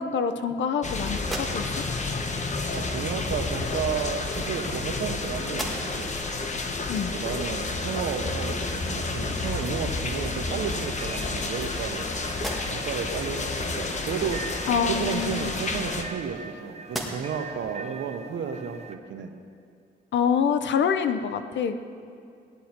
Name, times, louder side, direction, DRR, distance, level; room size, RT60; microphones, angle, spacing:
voice 1, 0.0-1.6 6.9-7.1 14.7-15.5 20.1-21.8, left 6 dB, 75° left, 9 dB, 0.8 m, -26 dB
sound 1, 0.8-16.0, left 3 dB, 40° left, 1.1 m, -30 dB
sound 2, 1.2-2.0 3.1-3.3 4.2-5.1 5.4-6.2 6.7-6.8 9.4-9.5 10.0-10.7 11.2-12.0 12.3-13.0 15.0-16.5 16.8-17.5, right 1 dB, ahead, 1.9 m, -39 dB
voice 2, 2.7-6.1 7.1-12.1 12.7-14.6 14.8-19.4, right 7 dB, 80° right, 6 dB, 1.0 m, -32 dB
sound 3, 10.5-19.0, right 4 dB, 35° right, 0.8 m, -43 dB
17.0 x 11.0 x 4.4 m, 2.4 s
cardioid pair, 100°, 19 cm